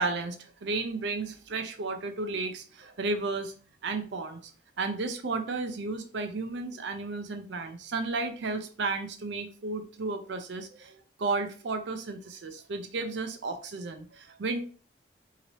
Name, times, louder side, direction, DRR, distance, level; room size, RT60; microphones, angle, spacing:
voice 1, 0.0-3.5 3.8-4.5 4.8-14.6, right 3 dB, 70° right, 6 dB, 0.5 m, -33 dB
3.0 x 2.8 x 2.8 m, 0.40 s
head